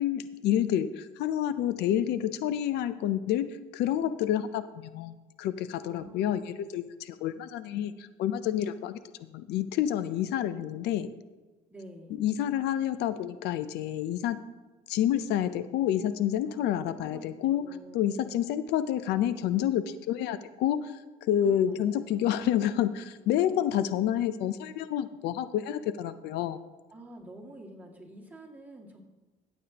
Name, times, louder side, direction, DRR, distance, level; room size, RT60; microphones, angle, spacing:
voice 1, 0.0-9.0 9.3-11.1 12.1-14.4 14.9-26.6, left 10 dB, 80° left, 13 dB, 0.5 m, -29 dB
voice 2, 5.8-6.4 11.7-12.2 16.5-18.1 21.4-22.3 26.9-29.0, right 1 dB, 10° right, -2 dB, 2.2 m, -48 dB
14.5 x 8.4 x 2.9 m, 1.2 s
cardioid pair, 110°, 17 cm